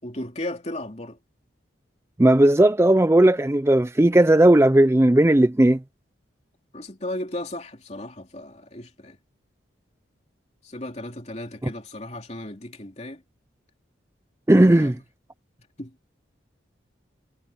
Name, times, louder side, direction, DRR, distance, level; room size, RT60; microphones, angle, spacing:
voice 1, 0.0-1.2 6.7-9.2 10.6-13.2 14.5-15.0 15.8-15.9, left 1 dB, 35° left, 3.2 m, -35 dB
voice 2, 2.2-5.8 14.5-14.9, right 1 dB, 15° right, 0.4 m, -16 dB
head